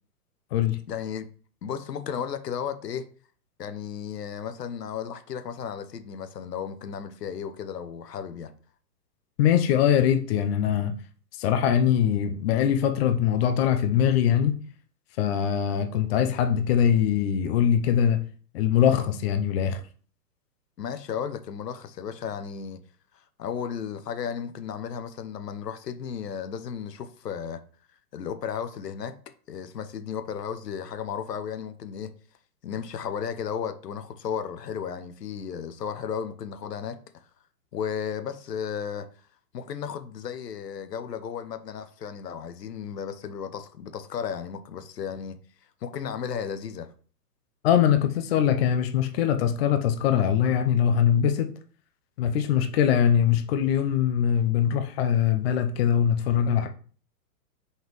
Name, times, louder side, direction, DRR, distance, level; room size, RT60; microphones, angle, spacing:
voice 1, 0.9-1.3 1.6-3.1 3.6-8.5 20.8-22.8 23.4-27.6 28.1-29.1 29.5-32.1 32.6-37.2 37.7-39.1 39.5-45.4 45.8-46.9, left 7 dB, 75° left, 1.0 m, -34 dB
voice 2, 9.4-11.0 11.4-14.6 15.2-18.2 18.5-19.8 47.6-51.5 52.2-56.7, left 9 dB, 40° left, 0.8 m, -22 dB
5.7 x 5.5 x 3.1 m
hypercardioid pair, 130°, 49 cm